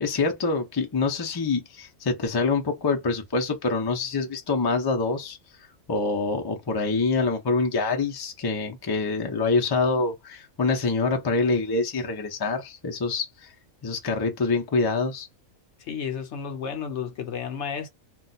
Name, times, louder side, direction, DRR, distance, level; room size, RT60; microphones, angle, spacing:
voice 1, 0.0-5.4 5.9-13.3 13.8-15.3, left 3 dB, 35° left, 0.3 m, -25 dB
voice 2, 15.9-17.9, left 7 dB, 65° left, 0.8 m, -32 dB
2.4 x 2.2 x 3.9 m
omnidirectional pair, 1.5 m